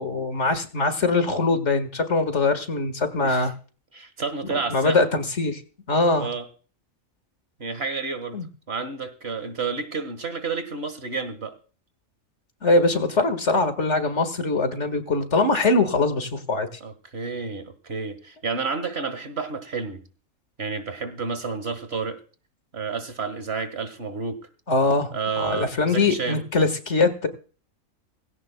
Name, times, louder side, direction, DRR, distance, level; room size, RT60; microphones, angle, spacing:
voice 1, 0.0-3.5 4.7-5.6 5.9-6.3 8.3-8.5 12.6-16.8 24.7-25.1 25.4-27.3, left 3 dB, 55° left, 10 dB, 2.1 m, -22 dB
voice 2, 3.9-5.0 6.1-6.5 7.6-8.4 8.7-11.5 16.8-20.0 20.6-22.2 22.7-24.4 25.1-26.4, right 4 dB, 50° right, 10 dB, 1.9 m, -30 dB
18.5 x 16.5 x 2.3 m, 0.38 s
omnidirectional pair, 1.4 m